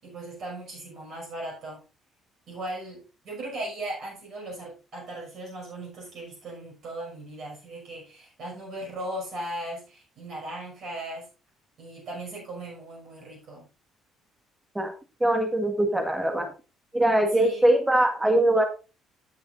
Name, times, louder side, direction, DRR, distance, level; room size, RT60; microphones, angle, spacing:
voice 1, 0.0-1.8 2.5-11.3 11.8-13.6 17.3-17.7, right 1 dB, 50° right, -2 dB, 6.1 m, -38 dB
voice 2, 15.2-16.5 16.9-18.6, right 1 dB, 10° right, 5 dB, 1.8 m, -22 dB
15.0 x 6.9 x 2.6 m, 0.31 s
figure-of-eight pair, 50°, 0 cm